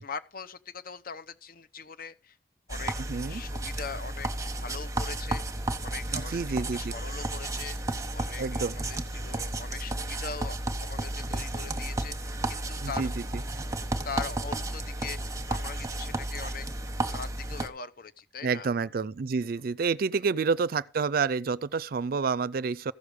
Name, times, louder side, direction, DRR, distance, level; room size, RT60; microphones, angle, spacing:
voice 1, 0.0-2.4 2.7-3.0 3.3-5.4 5.8-7.8 8.1-13.1 14.0-16.7 17.0-18.7 20.1-20.2, left 5 dB, 55° left, 0.9 m, -41 dB
sound 1, 2.7-17.7, right 2 dB, 20° right, 1.1 m, -33 dB
voice 2, 3.1-3.4 6.1-6.9 8.4-8.8 12.8-13.4 18.4-22.9, right 5 dB, 55° right, 0.4 m, -29 dB
15.0 x 6.5 x 5.1 m
head